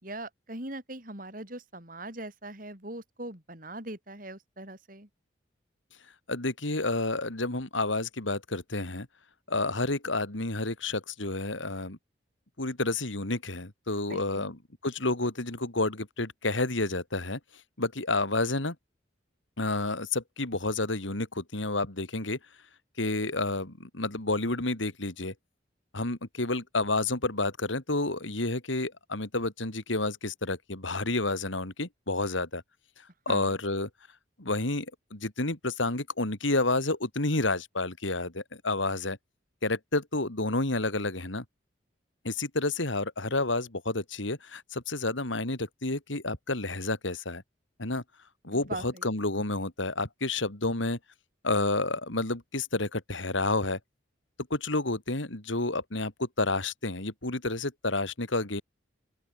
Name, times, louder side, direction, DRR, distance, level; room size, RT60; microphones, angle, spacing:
voice 1, 0.0-5.1 14.1-14.5 33.3-33.5 48.5-49.1, right 2 dB, 45° right, 5.5 m, -41 dB
voice 2, 6.3-9.1 9.5-12.0 12.6-14.6 14.8-17.4 17.8-18.7 19.6-22.4 23.0-25.3 25.9-32.6 33.2-33.9 34.4-34.9 35.1-39.2 39.6-41.4 42.2-47.4 47.8-48.0 48.4-51.0 51.4-53.8 54.5-58.6, left 2 dB, 85° left, 3.2 m, -30 dB
open air
head